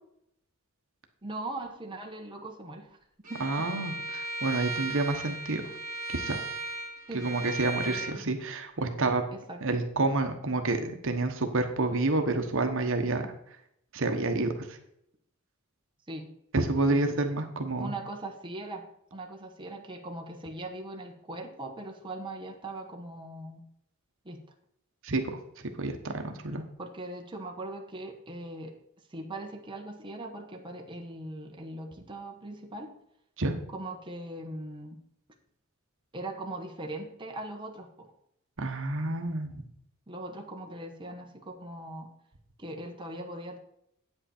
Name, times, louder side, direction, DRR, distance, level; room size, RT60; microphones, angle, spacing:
voice 1, 1.2-3.0 3.3-3.8 7.1-7.3 7.9-8.2 9.3-9.6 16.1-16.3 16.8-17.0 17.8-18.8 19.1-23.6 24.2-24.4 26.8-28.8 29.1-32.9 33.7-35.0 36.1-38.1 40.1-42.1 42.6-43.6, right 2 dB, 25° right, 2 dB, 1.1 m, -40 dB
Bowed string instrument, 3.2-8.1, right 1 dB, 40° right, 2.4 m, -36 dB
voice 2, 3.4-5.6 6.1-6.4 7.1-9.2 9.6-13.2 13.9-14.5 16.5-17.9 25.0-25.2 25.8-26.6 33.4-33.6 38.6-39.6, right 2 dB, 65° right, 5 dB, 1.1 m, -29 dB
8.8 x 7.8 x 4.3 m, 0.73 s
head